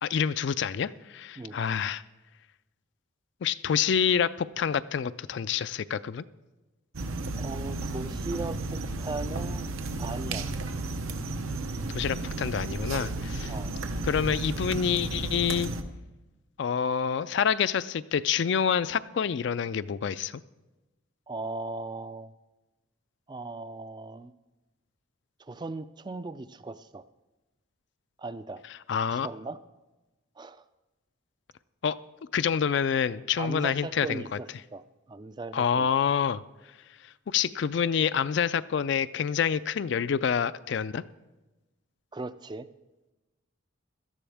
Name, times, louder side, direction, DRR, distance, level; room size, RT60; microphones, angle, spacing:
voice 1, 0.0-2.0 3.4-4.3 4.6-6.2 11.9-13.5 14.0-15.7 16.6-20.4 28.9-29.3 31.8-32.0 32.3-34.2 35.5-36.4 37.3-41.0, left 7 dB, 55° left, 15 dB, 0.3 m, -27 dB
sound 1, 6.9-15.8, right 2 dB, 85° right, 0.8 m, -33 dB
voice 2, 7.4-9.7 10.0-10.5 13.5-13.7 21.3-22.3 23.3-24.3 25.4-27.0 28.2-28.6 29.1-29.6 30.4-30.6 33.4-34.5 34.7-34.8 35.1-35.9 42.1-42.7, right 2 dB, 20° right, 12 dB, 0.3 m, -38 dB
17.0 x 12.5 x 3.5 m, 1.1 s
head